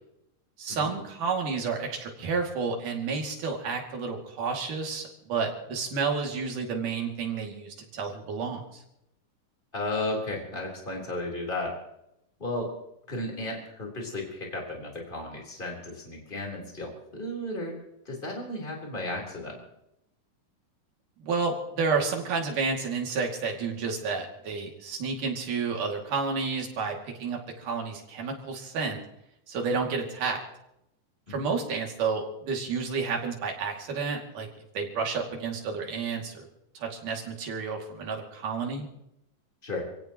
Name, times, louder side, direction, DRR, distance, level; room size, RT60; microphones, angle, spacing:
voice 1, 0.6-8.8 21.2-29.0 29.5-30.4 31.3-34.5 34.7-36.5 36.7-38.9, right 5 dB, 70° right, 0 dB, 4.1 m, -30 dB
voice 2, 9.7-11.7 12.4-12.7 13.1-17.7 18.1-19.6 31.3-31.5 39.6-39.8, left 2 dB, 15° left, -1 dB, 3.9 m, -34 dB
27.5 x 17.0 x 3.0 m, 0.82 s
omnidirectional pair, 3.8 m